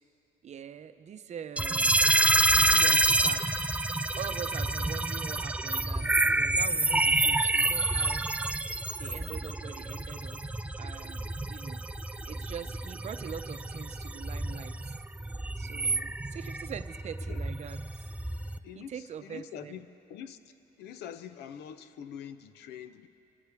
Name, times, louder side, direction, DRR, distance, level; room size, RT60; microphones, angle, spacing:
voice 1, 0.4-2.0 2.5-3.6 4.2-8.3 9.0-10.4 10.8-11.8 12.2-14.9 15.6-18.1 18.7-19.8, right 8 dB, 40° right, 10 dB, 0.7 m, -43 dB
sound 1, 1.6-18.6, right 2 dB, 5° right, 0.4 m, -28 dB
voice 2, 18.6-20.4 20.8-23.1, left 9 dB, 75° left, 11 dB, 0.8 m, -44 dB
25.5 x 15.5 x 3.5 m, 2.8 s
cardioid pair, 110°, 17 cm